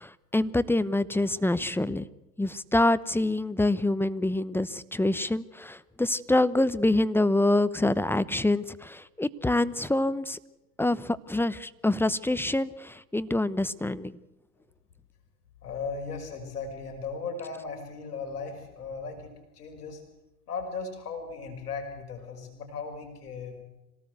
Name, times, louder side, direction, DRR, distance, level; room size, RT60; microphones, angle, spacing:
voice 1, 0.0-2.0 2.4-10.4 10.8-14.2, left 2 dB, 5° left, 15 dB, 0.9 m, -26 dB
voice 2, 15.6-20.0 20.5-23.6, left 4 dB, 75° left, 4 dB, 6.0 m, -37 dB
26.5 x 18.0 x 8.1 m, 0.98 s
hypercardioid pair, 90°, 46 cm